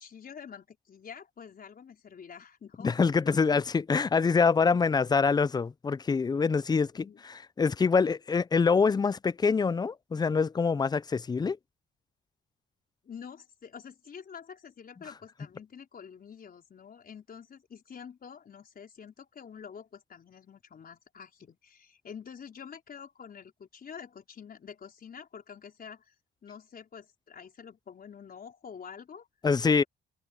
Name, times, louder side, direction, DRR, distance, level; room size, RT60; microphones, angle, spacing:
voice 1, 0.0-3.0 3.2-3.6 6.9-7.2 13.0-26.1 26.4-29.3 29.7-29.9, left 7 dB, 50° left, 4.8 m, -47 dB
voice 2, 2.8-11.6 29.4-29.8, left 5 dB, 20° left, 0.4 m, -25 dB
cardioid pair, 90°, 20 cm